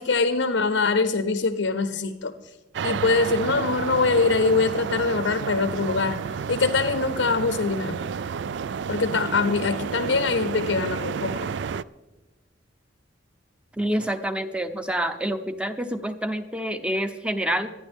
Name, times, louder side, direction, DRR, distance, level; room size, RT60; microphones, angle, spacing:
voice 1, 0.0-2.3 2.8-6.2 6.5-8.0 8.9-11.5, left 4 dB, 75° left, 10 dB, 0.7 m, -23 dB
sound 1, 2.7-11.8, right 6 dB, 65° right, 0.3 m, -31 dB
voice 2, 13.7-17.7, right 1 dB, 5° right, 8 dB, 0.7 m, -27 dB
25.5 x 10.0 x 3.6 m, 1.1 s
head